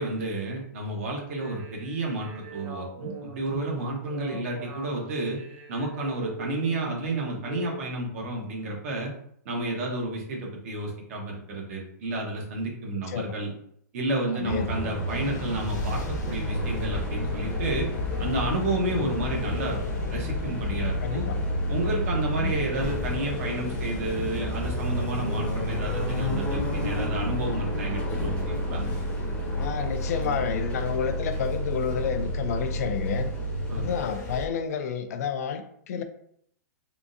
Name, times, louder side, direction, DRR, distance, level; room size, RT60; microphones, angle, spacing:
voice 1, 0.0-5.4 5.7-9.1 9.4-13.5 13.9-17.9 18.2-19.8 20.1-21.2 21.7-28.8 33.7-33.9, right 2 dB, 50° right, 0 dB, 1.1 m, -31 dB
sound 1, 1.2-7.9, right 2 dB, 35° right, 0.6 m, -41 dB
voice 2, 14.3-14.7 21.0-21.4 22.4-22.5 29.6-33.3 33.8-36.0, left 7 dB, 60° left, 8 dB, 0.4 m, -30 dB
sound 2, 14.4-34.1, left 2 dB, 10° left, 0.7 m, -34 dB
sound 3, 15.1-34.5, equal, 85° left, 1.0 m, -31 dB
3.6 x 2.5 x 2.6 m, 0.69 s
hypercardioid pair, 155°, 10 cm